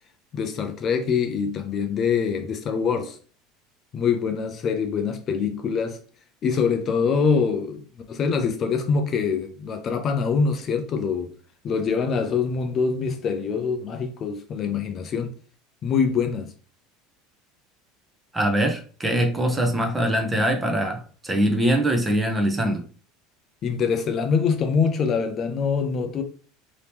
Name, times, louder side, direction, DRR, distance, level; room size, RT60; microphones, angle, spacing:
voice 1, 0.3-3.2 3.9-6.0 6.4-7.8 8.1-11.3 11.6-15.3 15.8-16.5 23.6-26.2, left 5 dB, 35° left, 0.5 m, -24 dB
voice 2, 18.3-22.8, right 1 dB, 15° right, 0.7 m, -23 dB
2.9 x 2.8 x 3.4 m
supercardioid pair, 130°, 0 cm